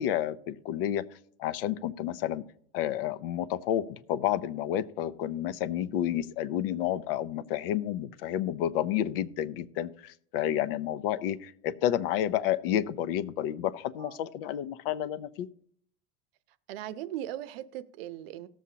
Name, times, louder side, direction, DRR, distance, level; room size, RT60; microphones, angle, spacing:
voice 1, 0.0-2.4 2.7-15.5, left 11 dB, 65° left, 14 dB, 0.7 m, -30 dB
voice 2, 16.7-18.5, right 12 dB, 70° right, 14 dB, 0.7 m, -39 dB
18.5 x 7.2 x 2.8 m, 0.64 s
supercardioid pair, 165°, 31 cm